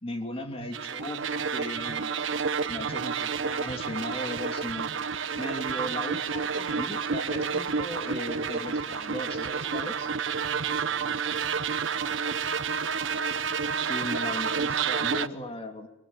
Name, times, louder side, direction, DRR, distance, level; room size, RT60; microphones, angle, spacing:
voice 1, 0.0-2.1 2.7-4.9 5.2-10.1 13.7-15.9, left 1 dB, 30° left, 5 dB, 2.9 m, -37 dB
sound 1, 0.7-15.3, right 6 dB, 80° right, 0.9 m, -30 dB
voice 2, 10.4-12.5, right 2 dB, 50° right, 4 dB, 4.1 m, -54 dB
26.5 x 23.0 x 9.3 m, 0.87 s
head